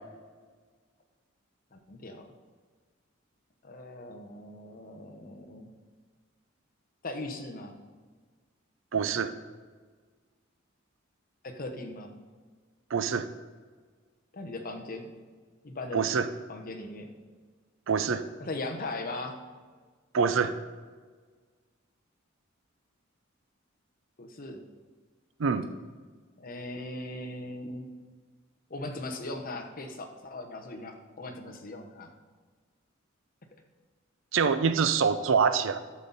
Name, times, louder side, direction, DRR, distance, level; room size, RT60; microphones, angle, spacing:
voice 1, 1.7-2.3 3.6-5.7 7.0-7.8 11.4-12.2 14.3-15.1 15.6-16.0 16.5-17.1 18.4-19.4 24.2-24.6 26.4-27.9 28.7-32.1, left 2 dB, 45° left, 4 dB, 1.0 m, -39 dB
voice 2, 8.9-9.3 12.9-13.3 15.9-16.3 17.9-18.2 20.1-20.5 25.4-25.7 34.3-35.8, right 6 dB, 70° right, 12 dB, 0.5 m, -25 dB
11.5 x 7.2 x 4.0 m, 1.5 s
head